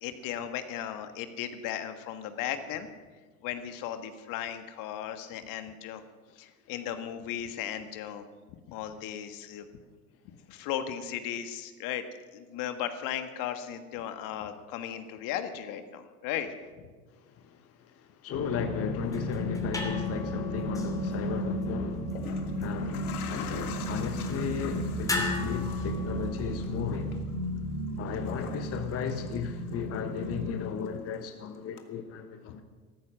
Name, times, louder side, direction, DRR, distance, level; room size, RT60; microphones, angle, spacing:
voice 1, 0.0-2.9 3.4-6.0 6.3-8.3 8.7-9.7 10.5-12.1 12.3-16.9 32.5-32.6, left 10 dB, 45° left, 1.6 m, -36 dB
voice 2, 18.2-27.2 28.0-32.6, left 7 dB, 30° left, 1.3 m, -35 dB
sound 1, 18.3-30.5, right 1 dB, 40° right, 4.2 m, -35 dB
sound 2, 18.9-27.0, left 3 dB, 5° left, 2.9 m, -38 dB
sound 3, 21.0-21.1 21.9-30.0 30.3-31.3 31.8-31.9, left 7 dB, 75° left, 1.8 m, -45 dB
14.5 x 14.0 x 6.3 m
hypercardioid pair, 95°, 45 cm